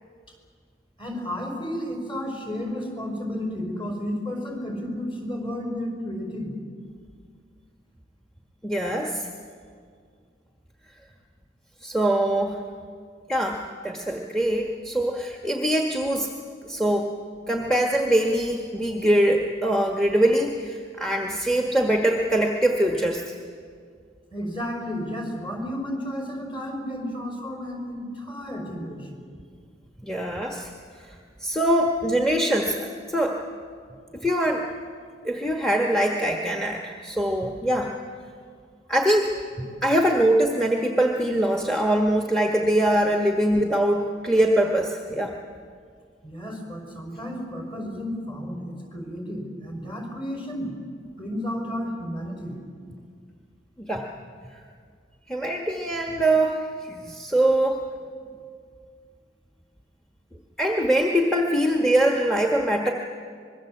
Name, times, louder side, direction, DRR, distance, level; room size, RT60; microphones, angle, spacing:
voice 1, 1.0-6.6 24.3-29.1 46.2-50.7 51.2-52.5, equal, 30° left, 1 dB, 5.1 m, -32 dB
voice 2, 8.6-9.3 11.8-12.6 13.3-16.3 16.6-17.2 17.5-23.3 30.0-30.7 31.0-31.1 31.4-33.4 34.1-34.6 35.2-37.9 38.9-39.3 39.8-45.3 53.8-54.1 55.3-57.8 60.6-62.9, right 1 dB, 5° left, 1 dB, 1.3 m, -23 dB
25.0 x 21.5 x 7.8 m, 2.1 s
head